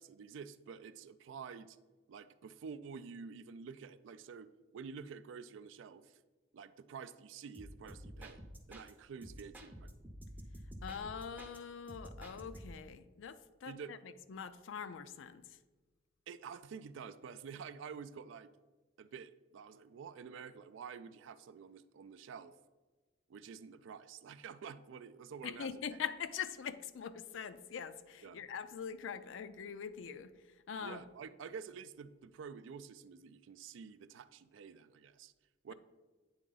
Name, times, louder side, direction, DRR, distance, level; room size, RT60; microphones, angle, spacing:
voice 1, 0.0-1.8 2.1-6.2 6.5-8.4 8.7-9.9 13.7-13.9 16.3-18.5 19.0-22.5 23.3-26.0 28.2-28.4 30.8-35.3 35.6-35.7, right 6 dB, 75° right, 13 dB, 0.3 m, -49 dB
sound 1, 7.5-8.9 9.2-11.6 11.9-12.9, equal, 10° right, 0.5 m, -50 dB
voice 2, 10.8-15.6 25.4-31.0, left 7 dB, 75° left, 12 dB, 0.4 m, -43 dB
8.7 x 3.6 x 3.9 m, 1.3 s
head